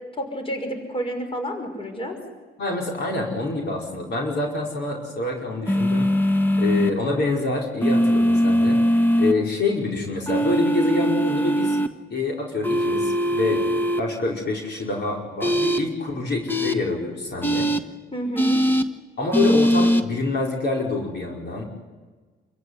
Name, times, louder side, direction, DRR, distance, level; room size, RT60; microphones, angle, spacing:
voice 1, 0.1-2.2 18.1-18.6, equal, 25° left, 4 dB, 5.7 m, -29 dB
voice 2, 2.6-6.1 6.6-11.8 12.1-17.7 19.2-21.6, left 3 dB, 60° left, -1 dB, 5.5 m, -26 dB
sound 1, 5.7-6.9 7.8-9.3 10.3-11.9 12.6-14.0 15.4-15.8 16.5-16.7 17.4-17.8 18.4-18.8 19.3-20.0, equal, 10° left, 1.6 m, -20 dB
28.0 x 15.5 x 9.9 m, 1.4 s
cardioid pair, 90°, 20 cm